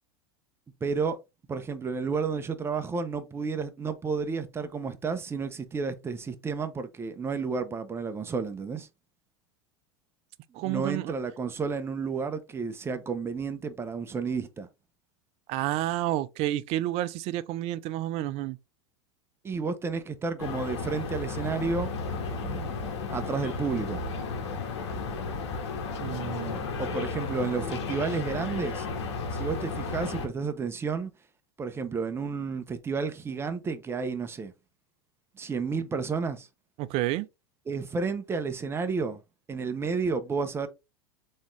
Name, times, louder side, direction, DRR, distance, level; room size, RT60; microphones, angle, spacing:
voice 1, 0.8-1.2 1.5-8.9 10.6-14.7 19.4-21.9 22.4-22.8 23.1-24.0 26.8-28.9 29.3-31.1 31.6-34.5 35.4-36.5 37.7-39.2 39.5-40.7, right 5 dB, 15° right, 0.7 m, -31 dB
voice 2, 10.5-11.1 15.5-18.6 26.0-26.7 36.8-37.3, right 14 dB, 45° right, 0.5 m, -30 dB
sound 1, 20.4-30.3, left 4 dB, 85° left, 1.6 m, -33 dB
4.3 x 3.6 x 3.2 m
supercardioid pair, 120°, 14 cm